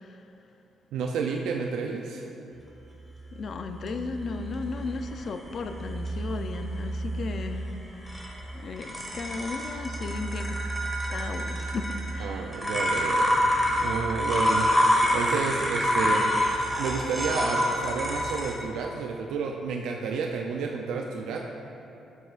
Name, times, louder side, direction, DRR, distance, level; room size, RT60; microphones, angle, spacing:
voice 1, 0.9-2.3 12.2-16.3 16.8-21.5, right 5 dB, 85° right, 1 dB, 0.5 m, -31 dB
voice 2, 3.3-7.7 8.5-10.6 11.1-12.5, left 4 dB, 55° left, 7 dB, 0.5 m, -35 dB
sound 1, 3.9-18.5, equal, 5° left, 1.7 m, -28 dB
12.5 x 6.5 x 2.5 m, 2.8 s
cardioid pair, 90°, 0 cm